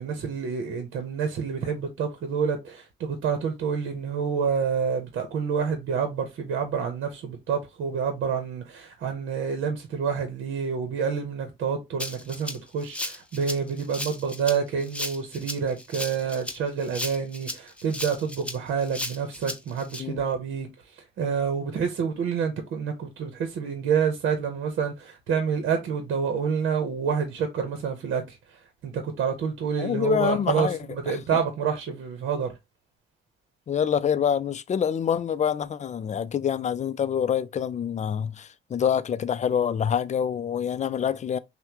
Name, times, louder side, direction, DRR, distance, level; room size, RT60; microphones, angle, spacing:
voice 1, 0.0-20.7 21.2-28.2 28.8-32.5, right 6 dB, 75° right, 0.9 m, -28 dB
Rattle (instrument), 12.0-20.0, left 1 dB, 5° left, 0.7 m, -35 dB
voice 2, 29.8-30.8 31.1-31.2 33.7-41.4, left 8 dB, 35° left, 0.4 m, -26 dB
5.6 x 2.2 x 2.9 m
cardioid pair, 90°, 20 cm